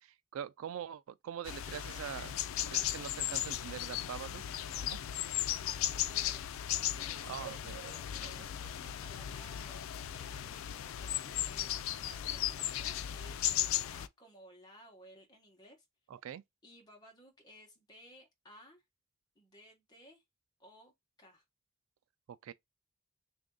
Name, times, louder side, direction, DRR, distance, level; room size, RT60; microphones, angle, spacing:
voice 1, 0.0-4.4 4.8-5.0 7.3-7.9 8.2-8.5 16.1-16.4 22.3-22.5, right 9 dB, 85° right, 0.3 m, -44 dB
sound 1, 1.5-14.1, left 12 dB, 80° left, 0.3 m, -36 dB
voice 2, 5.5-15.8 16.6-18.8 19.3-20.2 20.6-20.9 21.2-21.4, equal, 20° left, 1.1 m, -57 dB
3.4 x 2.5 x 3.8 m
head